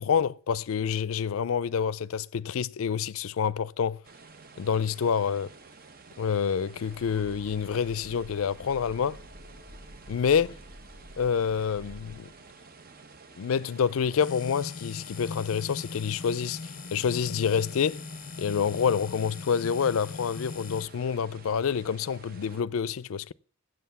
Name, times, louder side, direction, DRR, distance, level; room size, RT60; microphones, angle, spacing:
voice 1, 0.0-4.0 4.6-5.5 6.2-9.2 10.1-10.5 11.2-12.3 13.4-16.6 16.9-18.0 18.4-23.3, left 7 dB, 75° left, 0.4 m, -27 dB
sound 1, 4.0-22.6, right 4 dB, 45° right, 0.8 m, -51 dB
Train, 6.7-12.5, equal, 60° right, 6.8 m, -49 dB
sound 2, 14.2-20.8, left 4 dB, 40° left, 0.7 m, -40 dB
8.0 x 7.8 x 6.9 m
head